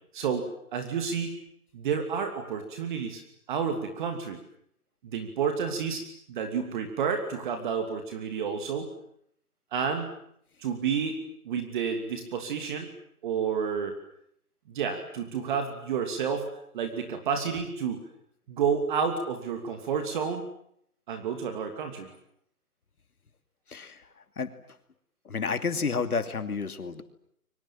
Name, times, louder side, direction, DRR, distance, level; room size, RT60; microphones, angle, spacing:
voice 1, 0.1-1.4 1.7-3.2 3.5-4.4 5.0-8.9 9.7-10.1 10.6-11.2 11.4-12.9 13.2-14.0 14.7-18.0 18.5-20.4 21.1-22.1, right 6 dB, 35° right, 6 dB, 2.8 m, -30 dB
voice 2, 23.7-24.0 24.4-24.5 25.2-27.0, left 5 dB, 75° left, 10 dB, 2.7 m, -30 dB
30.0 x 24.0 x 7.5 m, 0.69 s
hypercardioid pair, 155°, 45 cm